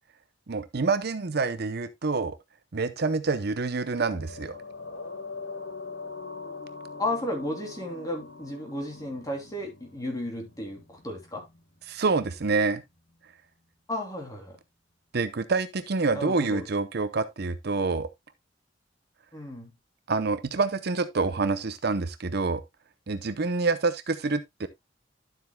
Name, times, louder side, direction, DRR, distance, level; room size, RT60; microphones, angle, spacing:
voice 1, 0.5-2.4 2.7-4.6 11.9-12.8 15.1-18.1 20.1-22.6 23.1-24.7, right 4 dB, 60° right, 0.7 m, -27 dB
sound 1, 4.1-12.7 13.0-13.1, left 4 dB, 65° left, 1.6 m, -43 dB
voice 2, 7.0-11.5 13.9-14.6 16.1-16.6 19.3-19.7, left 1 dB, 20° left, 2.9 m, -33 dB
11.5 x 7.6 x 2.2 m
head